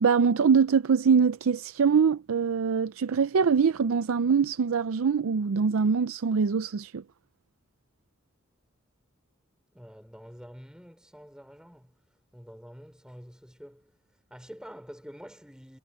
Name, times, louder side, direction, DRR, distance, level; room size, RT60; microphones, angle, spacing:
voice 1, 0.0-7.0, right 6 dB, 80° right, 0.5 m, -23 dB
voice 2, 9.7-11.9 12.3-13.9 14.3-15.8, equal, 5° right, 3.6 m, -47 dB
head